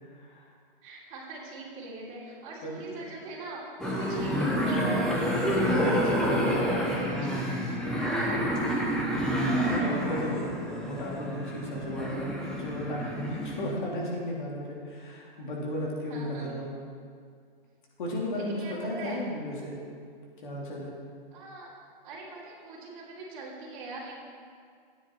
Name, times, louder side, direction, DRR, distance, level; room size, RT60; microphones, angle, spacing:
voice 1, 0.0-0.5 2.6-2.7 9.4-10.5 10.8-16.7 18.0-19.8 20.4-20.9, left 1 dB, 55° left, -3 dB, 2.9 m, -35 dB
voice 2, 0.8-7.5 16.1-16.5 18.3-19.2 21.3-21.7 22.0-24.2, right 2 dB, 35° right, -5 dB, 3.3 m, -42 dB
sound 1, 3.8-13.7, equal, ahead, 0.6 m, -28 dB
12.5 x 9.8 x 4.5 m, 2.2 s
hypercardioid pair, 160°, 29 cm